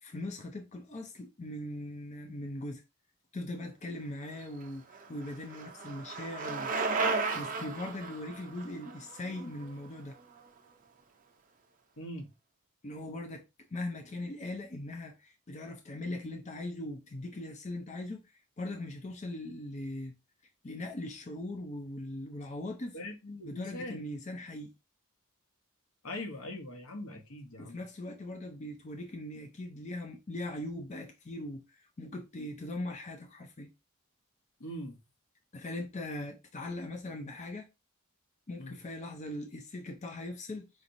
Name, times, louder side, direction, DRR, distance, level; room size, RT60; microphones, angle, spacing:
voice 1, 0.0-2.8 3.3-6.7 7.3-10.2 12.8-13.4 13.7-20.1 20.6-23.0 23.4-24.7 27.6-33.7 35.5-37.7 38.5-40.7, left 1 dB, 30° left, 0.5 m, -40 dB
Bicycle, 4.4-10.4, right 4 dB, 35° right, 0.5 m, -35 dB
voice 2, 12.0-12.3 22.9-24.0 26.0-27.8 34.6-35.0 38.6-38.8, left 1 dB, 80° left, 1.1 m, -41 dB
5.0 x 3.0 x 2.6 m
head